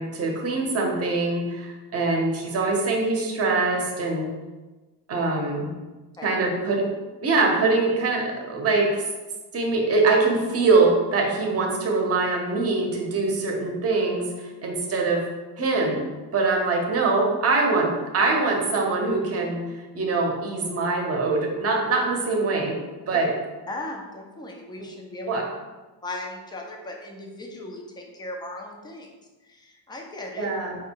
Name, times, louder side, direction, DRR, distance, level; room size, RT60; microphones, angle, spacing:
voice 1, 0.0-4.3 5.1-5.7 6.2-6.8 7.2-9.0 9.5-15.2 15.6-16.0 16.3-19.6 19.9-22.8 23.1-23.3 25.3-25.4 30.4-30.7, right 3 dB, 35° right, 0 dB, 0.7 m, -23 dB
voice 2, 23.7-25.4 26.0-29.1 29.4-30.5, left 2 dB, 10° left, 1 dB, 0.3 m, -37 dB
4.7 x 2.1 x 4.4 m, 1.2 s
cardioid pair, 170°, 43 cm